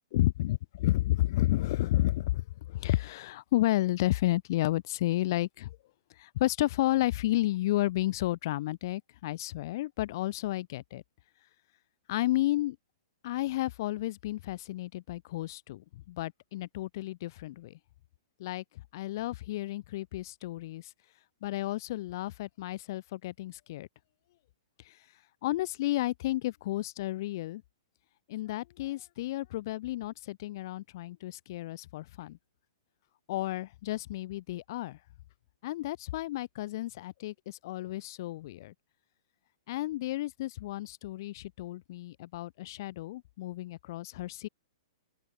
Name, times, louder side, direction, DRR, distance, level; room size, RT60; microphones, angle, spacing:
voice 1, 0.1-5.7 6.2-11.0 12.1-12.8 13.2-17.8 18.4-18.6 18.9-20.9 21.4-23.9 24.8-24.9 25.4-27.6 28.3-32.4 33.3-35.0 35.6-38.7 39.7-44.5, left 16 dB, 35° left, 3.4 m, -32 dB
open air
hypercardioid pair, 175°, 3 cm